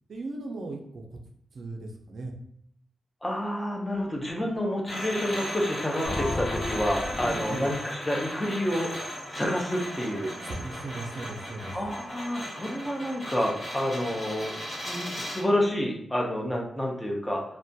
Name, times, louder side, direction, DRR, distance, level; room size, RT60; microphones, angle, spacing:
voice 1, 0.1-1.2 1.5-2.3 7.2-7.6 10.4-11.8, right 2 dB, 55° right, 2 dB, 0.4 m, -37 dB
voice 2, 3.2-8.9 9.3-10.3 11.7-14.5 14.8-17.4, left 1 dB, 10° left, -1 dB, 0.4 m, -29 dB
sound 1, 4.8-15.5, equal, 35° left, 1.4 m, -37 dB
sound 2, 6.0-9.8, left 2 dB, 75° left, 0.6 m, -35 dB
2.3 x 2.1 x 2.6 m, 0.67 s
wide cardioid pair, 160°, 0 cm